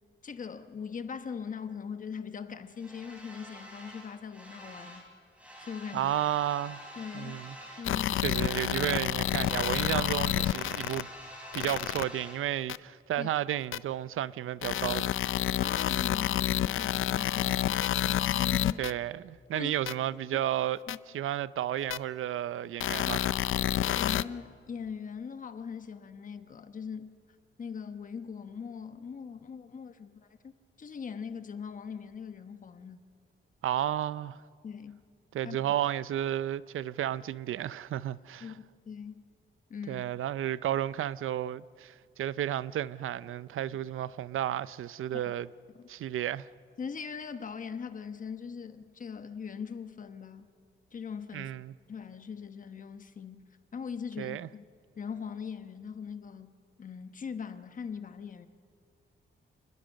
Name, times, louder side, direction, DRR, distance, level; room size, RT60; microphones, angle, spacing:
voice 1, 0.2-5.1 5.6-6.1 7.0-7.4 7.8-8.2 13.2-13.3 15.5-18.9 19.5-19.7 20.9-21.0 23.0-23.1 23.7-27.1 27.6-30.5 30.8-33.0 34.6-35.0 35.4-35.6 38.4-39.2 39.7-40.1 45.1-45.3 45.7-45.9 46.8-50.4 50.9-51.5 51.9-53.4 53.7-54.6 55.0-56.5 56.8-58.5, left 6 dB, 40° left, 1.1 m, -41 dB
sound 1, 2.7-5.1 5.3-7.9 8.2-12.4, equal, 5° right, 4.1 m, -47 dB
voice 2, 5.9-6.8 7.1-7.5 8.2-11.1 11.5-15.1 18.8-20.8 21.1-23.3 33.6-34.4 35.3-38.5 39.9-45.5 45.9-46.5 51.3-51.7 54.2-54.5, right 12 dB, 85° right, 0.6 m, -32 dB
sound 2, 7.8-11.0 11.5-12.0 12.7-12.8 13.7-13.8 14.6-18.9 19.9-20.0 20.9-21.0 21.9-22.0 22.8-24.2, left 12 dB, 75° left, 0.5 m, -29 dB
28.0 x 20.5 x 6.5 m
wide cardioid pair, 170°, 21 cm